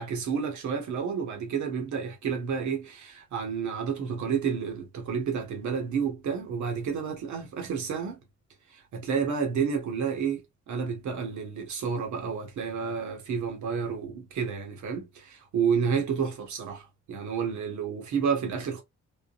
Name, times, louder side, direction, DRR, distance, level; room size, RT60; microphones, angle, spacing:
voice 1, 0.0-8.2 8.7-10.4 10.7-18.8, right 6 dB, 75° right, 1.3 m, -30 dB
3.7 x 2.1 x 2.4 m
cardioid pair, 90°, 30 cm